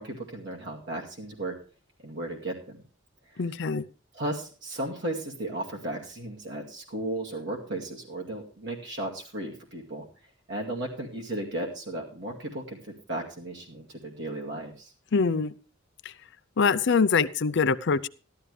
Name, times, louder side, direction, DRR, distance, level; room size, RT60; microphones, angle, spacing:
voice 1, 0.0-1.5 2.0-2.8 4.1-10.1 10.5-14.9, right 1 dB, 60° right, -1 dB, 2.3 m, -35 dB
voice 2, 3.4-3.8 15.1-15.5 16.0-16.1 16.6-18.1, left 5 dB, 65° left, 14 dB, 0.5 m, -24 dB
14.0 x 12.5 x 3.3 m, 0.36 s
head